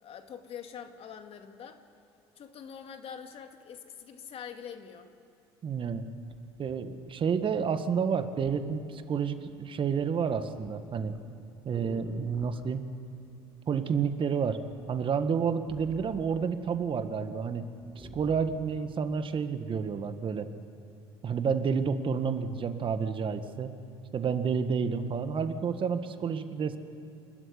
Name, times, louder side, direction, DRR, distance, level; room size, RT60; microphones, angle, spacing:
voice 1, 0.0-1.8 2.4-5.1, left 7 dB, 45° left, 6 dB, 2.4 m, -44 dB
voice 2, 5.6-6.1 6.6-11.1 11.7-12.9 13.7-14.6 14.9-17.6 18.0-20.5 21.2-23.7 24.1-26.8, right 6 dB, 40° right, 9 dB, 1.7 m, -30 dB
sound 1, 7.0-7.8 8.5-8.7 9.0-9.5 9.8-12.7 13.8-14.3 14.6-16.9 17.2-17.3 17.6-18.8 19.4-19.5, right 1 dB, 10° right, 5.1 m, -50 dB
28.5 x 13.0 x 9.8 m, 2.7 s
hypercardioid pair, 65°, 13 cm